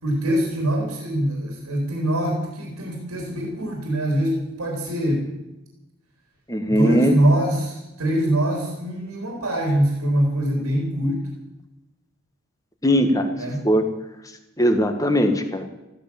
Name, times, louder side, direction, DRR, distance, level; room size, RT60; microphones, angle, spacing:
voice 1, 0.0-5.3 6.7-11.2 13.4-13.6, right 1 dB, 90° right, 1 dB, 3.7 m, -23 dB
voice 2, 6.5-7.1 12.8-13.3 13.6-13.9 14.6-15.7, equal, 15° left, 6 dB, 1.4 m, -19 dB
14.5 x 13.0 x 7.0 m, 1.0 s
head